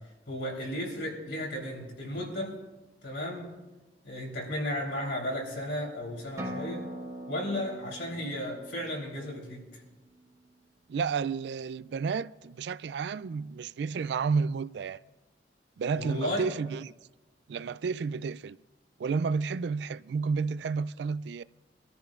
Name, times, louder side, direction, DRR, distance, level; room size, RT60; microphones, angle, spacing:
voice 1, 0.3-2.5 3.0-3.6 4.0-6.9 7.3-9.8 15.9-16.4, left 1 dB, 80° left, 3.7 m, -34 dB
sound 1, 6.4-10.1, equal, 20° right, 1.5 m, -42 dB
voice 2, 10.9-15.0 15.8-16.9 17.5-18.6 19.0-21.4, right 5 dB, 75° right, 0.3 m, -31 dB
25.5 x 14.0 x 2.5 m
head